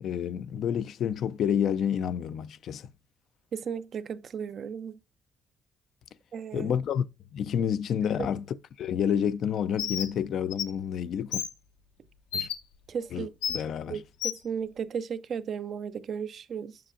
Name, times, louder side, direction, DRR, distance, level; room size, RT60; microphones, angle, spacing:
voice 1, 0.0-2.9 6.5-7.0 7.3-8.4 8.8-11.4 12.3-12.5 13.1-14.0, left 8 dB, 70° left, 0.3 m, -29 dB
voice 2, 3.5-5.0 6.3-6.7 12.9-13.3 13.9-16.8, right 7 dB, 60° right, 0.5 m, -35 dB
Bird, 9.8-10.1 10.5-10.6 11.3-11.5 12.3-12.5 13.4-13.6 14.2-14.4, left 8 dB, 90° left, 0.8 m, -30 dB
7.6 x 6.2 x 2.5 m
supercardioid pair, 65°, 0 cm